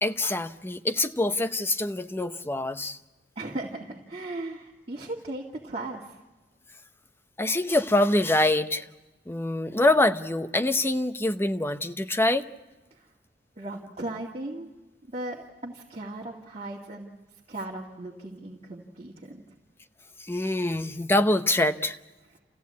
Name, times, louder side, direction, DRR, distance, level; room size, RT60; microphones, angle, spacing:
voice 1, 0.0-3.0 7.4-8.9 9.3-12.5 20.3-22.0, left 1 dB, 15° left, 9 dB, 0.8 m, -25 dB
voice 2, 3.4-6.2 12.9-13.1 13.6-14.7 15.1-17.2 17.5-19.4, right 2 dB, 35° right, -3 dB, 2.2 m, -37 dB
28.0 x 15.5 x 8.4 m, 1.1 s
head